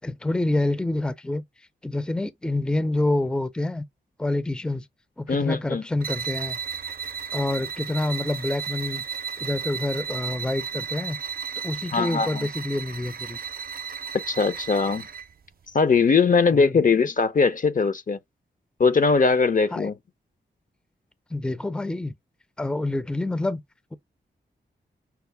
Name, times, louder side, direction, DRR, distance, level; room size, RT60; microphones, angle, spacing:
voice 1, 0.0-1.4 1.8-3.8 4.2-4.9 5.2-6.6 7.3-9.0 9.4-11.2 11.6-13.4 16.5-16.9 19.7-19.9 21.3-22.1 22.6-23.6, left 2 dB, 5° left, 0.6 m, -27 dB
voice 2, 5.3-5.8 11.9-12.5 14.1-15.0 15.7-18.2 18.8-19.9, left 4 dB, 45° left, 0.7 m, -21 dB
sound 1, 6.0-15.3, right 7 dB, 50° right, 0.6 m, -34 dB
5.8 x 2.0 x 3.3 m
cardioid pair, 45°, 19 cm